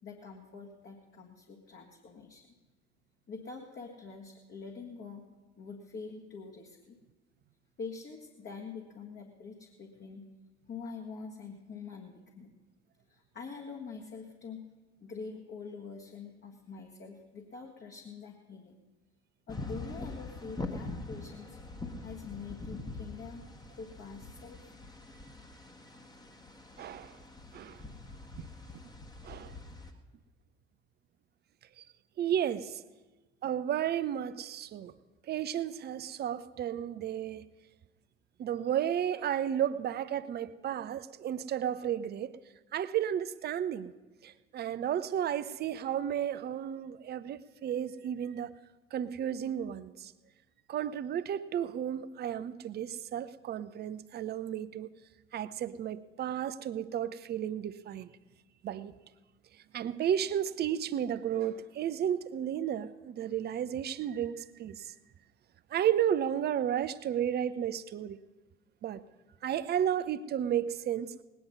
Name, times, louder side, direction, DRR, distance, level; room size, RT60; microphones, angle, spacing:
voice 1, 0.0-2.5 3.3-5.2 5.6-7.0 7.8-10.3 10.7-12.6 13.1-14.6 15.0-18.8 19.5-21.6 22.0-23.5 23.8-24.7, left 5 dB, 35° left, 1.7 m, -45 dB
sound 1, 19.5-29.9, left 2 dB, 10° left, 1.4 m, -44 dB
voice 2, 26.8-27.2 27.5-27.8 28.4-28.5 29.2-29.6 31.8-31.9 32.2-32.8 33.4-34.9 35.3-37.5 38.4-42.4 42.7-43.9 44.2-48.5 48.9-50.1 50.7-54.9 55.3-58.1 58.6-59.0 59.7-64.9 65.7-68.2 68.8-69.0 69.4-71.1, right 10 dB, 30° right, 0.6 m, -33 dB
19.5 x 9.4 x 5.4 m
figure-of-eight pair, 60°, 33 cm